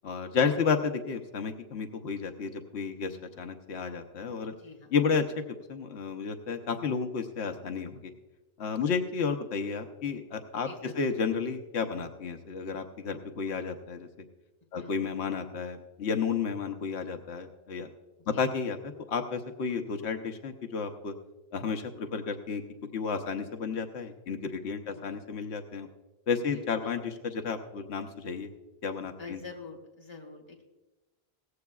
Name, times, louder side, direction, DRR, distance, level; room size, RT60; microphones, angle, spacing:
voice 1, 0.0-4.5 4.9-5.2 5.7-8.0 8.6-10.7 11.0-14.1 14.7-17.9 18.3-18.8 19.1-21.1 21.5-22.6 22.9-25.9 26.3-28.5 28.8-29.4, left 5 dB, 90° left, 6 dB, 1.1 m, -32 dB
voice 2, 4.6-4.9 8.7-9.0 10.6-11.0 14.7-15.0 18.3-18.4 24.9-25.1 26.5-26.9 29.2-30.6, left 4 dB, 25° left, 1 dB, 1.9 m, -46 dB
17.5 x 15.0 x 2.3 m, 1.1 s
omnidirectional pair, 1.1 m